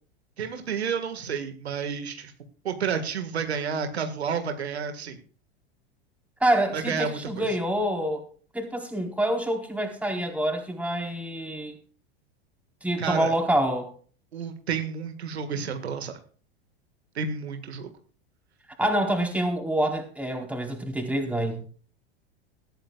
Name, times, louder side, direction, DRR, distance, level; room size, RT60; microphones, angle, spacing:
voice 1, 0.4-2.3 2.6-5.2 6.7-7.5 13.0-13.3 14.3-16.1 17.2-17.9, right 6 dB, 85° right, 7 dB, 1.9 m, -30 dB
voice 2, 6.4-8.2 8.5-11.8 12.8-13.9 18.8-21.7, right 1 dB, 5° right, 2 dB, 4.2 m, -26 dB
19.5 x 13.0 x 2.4 m, 0.43 s
hypercardioid pair, 95°, 31 cm